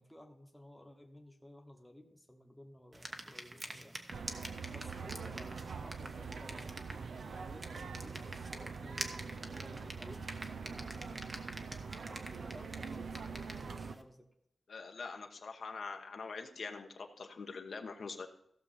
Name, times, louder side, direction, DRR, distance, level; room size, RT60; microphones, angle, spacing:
voice 1, 0.0-4.0 4.7-6.8 7.2-11.2 12.0-14.3, left 1 dB, 5° left, 2 dB, 1.1 m, -56 dB
sound 1, 2.9-14.0, right 1 dB, 25° right, 1.0 m, -47 dB
sound 2, 4.1-13.9, right 5 dB, 85° right, 0.7 m, -44 dB
voice 2, 14.7-18.3, left 4 dB, 65° left, 4 dB, 1.1 m, -44 dB
15.5 x 6.7 x 4.3 m, 0.74 s
wide cardioid pair, 175°, 0 cm